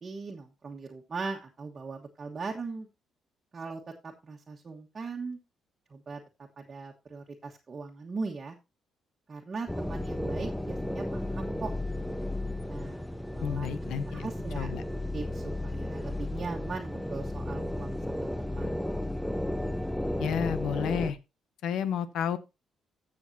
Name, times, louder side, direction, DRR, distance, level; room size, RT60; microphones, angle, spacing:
voice 1, 0.0-2.9 3.5-5.4 5.9-6.2 6.6-8.6 9.3-11.7 12.7-13.1 13.3-13.8 14.1-14.7 15.1-18.8, right 4 dB, 35° right, 1.3 m, -39 dB
sound 1, 9.7-21.1, left 1 dB, 5° left, 0.6 m, -34 dB
voice 2, 13.4-14.3 14.5-14.8 20.2-21.2 21.6-22.4, left 8 dB, 80° left, 0.9 m, -31 dB
15.0 x 6.5 x 2.8 m
cardioid pair, 90°, 0 cm